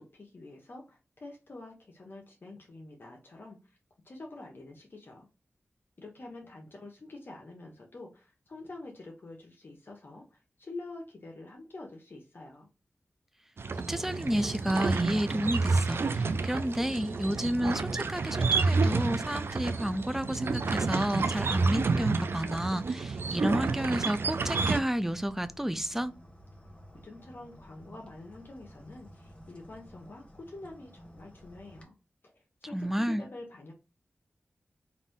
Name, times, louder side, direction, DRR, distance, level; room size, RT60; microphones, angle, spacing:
voice 1, 0.0-3.6 4.0-5.3 6.0-12.7 27.0-31.9 32.2-33.7, left 2 dB, 55° left, 1.0 m, -47 dB
sound 1, 13.6-24.8, right 4 dB, 65° right, 0.4 m, -29 dB
voice 2, 13.9-26.1 32.7-33.2, equal, 5° right, 0.4 m, -31 dB
sound 2, 24.8-31.8, equal, 25° left, 1.2 m, -53 dB
4.1 x 2.6 x 3.6 m
wide cardioid pair, 70°, 4 cm